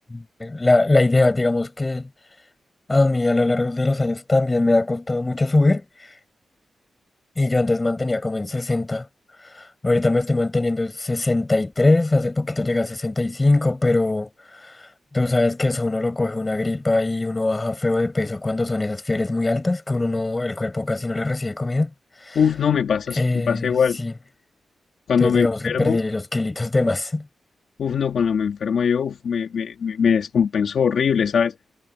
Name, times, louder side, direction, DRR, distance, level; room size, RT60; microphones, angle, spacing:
voice 1, 0.1-2.1 2.9-6.1 7.4-9.1 9.5-21.9 22.2-22.4 23.2-24.1 25.2-27.3, left 2 dB, 15° left, 7.6 m, -22 dB
voice 2, 22.3-24.0 25.1-26.0 27.8-31.6, left 7 dB, 60° left, 2.9 m, -21 dB
wide cardioid pair, 175°, 0 cm